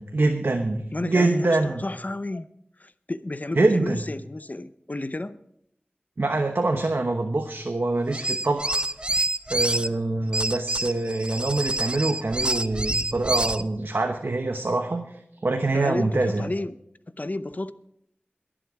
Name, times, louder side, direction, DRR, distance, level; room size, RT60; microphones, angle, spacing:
voice 1, 0.0-1.8 3.6-4.0 6.2-8.8 9.5-15.0 15.4-16.5, right 2 dB, 75° right, 4 dB, 1.0 m, -24 dB
voice 2, 0.9-2.5 2.8-5.4 15.7-16.8 17.2-17.7, left 2 dB, 45° left, 13 dB, 0.7 m, -32 dB
sound 1, 8.1-9.9 10.3-13.6, right 1 dB, 25° right, 0.5 m, -27 dB
22.0 x 7.7 x 4.7 m, 0.73 s
wide cardioid pair, 45°, 4 cm